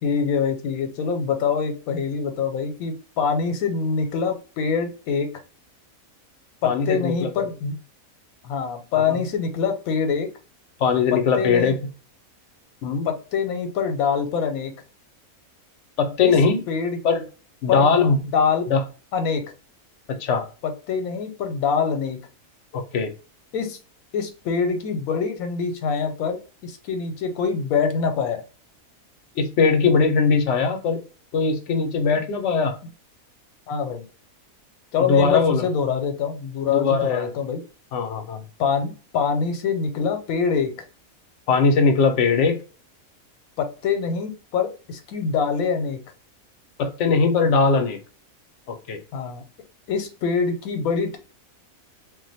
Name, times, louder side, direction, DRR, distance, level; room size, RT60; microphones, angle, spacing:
voice 1, 0.0-5.3 6.6-7.7 8.4-10.3 11.1-11.7 13.0-14.7 16.2-16.3 16.7-17.0 17.7-18.7 19.1-19.4 20.6-22.2 23.5-23.8 24.1-28.4 33.7-34.0 34.9-37.6 38.6-40.7 43.6-46.0 49.1-49.4 49.9-51.2, left 6 dB, 85° left, 1.1 m, -24 dB
voice 2, 6.6-7.3 9.1-9.2 10.8-11.8 12.8-13.1 16.0-16.6 17.0-17.2 17.6-18.2 18.7-18.8 20.2-20.5 22.7-23.1 29.4-31.0 31.3-32.8 35.0-35.7 36.7-37.3 37.9-38.4 41.5-42.6 46.8-48.0 48.7-49.0, left 5 dB, 65° left, 0.9 m, -20 dB
2.5 x 2.2 x 3.9 m
omnidirectional pair, 1.5 m